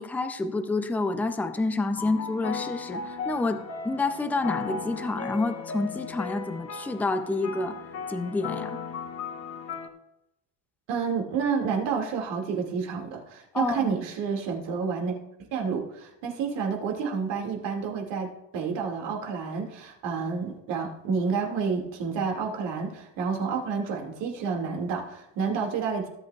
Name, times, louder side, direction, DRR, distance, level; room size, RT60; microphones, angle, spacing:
voice 1, 0.0-7.8 8.1-8.8 13.5-13.9, left 3 dB, 5° left, 8 dB, 0.3 m, -28 dB
sound 1, 2.0-9.9, left 5 dB, 35° left, 1.1 m, -36 dB
voice 2, 10.9-15.2 15.5-26.1, right 5 dB, 70° right, 1 dB, 2.4 m, -29 dB
17.5 x 8.7 x 2.4 m, 0.86 s
cardioid pair, 155°, 45 cm